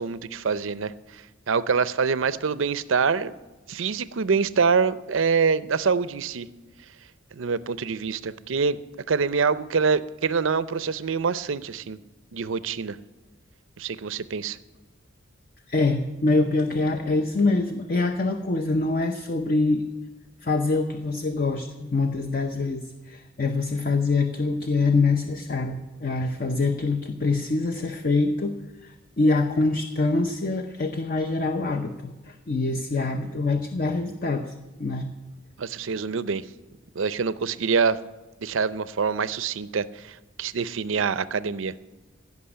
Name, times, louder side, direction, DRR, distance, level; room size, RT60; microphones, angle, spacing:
voice 1, 0.0-3.3 3.7-6.5 7.3-8.8 9.1-12.0 12.3-13.0 13.8-14.6 35.6-36.4 37.0-38.0 38.4-41.7, right 5 dB, 70° right, 16 dB, 0.5 m, -25 dB
voice 2, 15.7-19.8 20.4-28.5 28.8-34.5 34.8-35.1, left 3 dB, 45° left, 7 dB, 0.7 m, -25 dB
16.0 x 6.0 x 9.7 m, 1.2 s
head